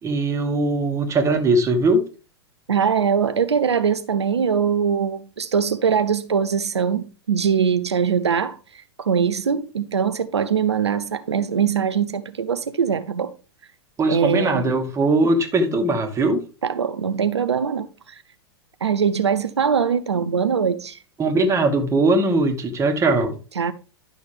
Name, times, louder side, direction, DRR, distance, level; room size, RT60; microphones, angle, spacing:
voice 1, 0.0-2.0 14.0-16.4 21.2-23.4, right 2 dB, 20° right, 1.9 m, -20 dB
voice 2, 2.7-13.3 14.1-14.6 16.6-18.2 18.8-21.0 23.6-23.7, right 7 dB, 80° right, 0.6 m, -22 dB
11.0 x 6.3 x 3.5 m
figure-of-eight pair, 100°, 14 cm